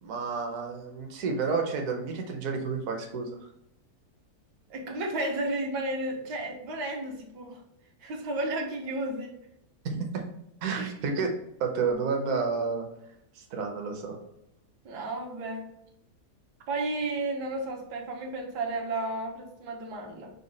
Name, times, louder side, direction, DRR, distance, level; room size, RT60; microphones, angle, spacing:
voice 1, 0.0-3.3 9.8-10.2 10.6-11.3 11.6-12.8 13.4-14.2, right 5 dB, 60° right, 2 dB, 1.0 m, -30 dB
voice 2, 4.7-7.6 8.0-9.3 10.8-10.9 14.8-15.6 16.7-20.3, right 2 dB, 80° right, 1 dB, 1.4 m, -33 dB
5.2 x 2.2 x 3.8 m, 0.78 s
omnidirectional pair, 1.8 m